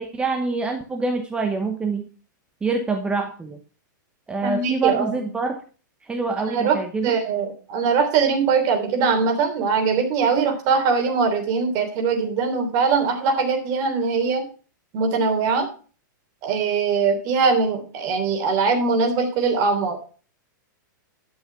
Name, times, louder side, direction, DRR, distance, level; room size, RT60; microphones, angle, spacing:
voice 1, 0.0-2.0 2.6-3.6 4.3-5.6 6.0-7.1, right 4 dB, 10° right, 5 dB, 0.9 m, -25 dB
voice 2, 4.4-5.3 6.5-14.4 14.9-15.7 16.4-20.0, right 5 dB, 35° right, 4 dB, 3.3 m, -21 dB
12.0 x 6.3 x 5.9 m, 0.38 s
supercardioid pair, 155°, 11 cm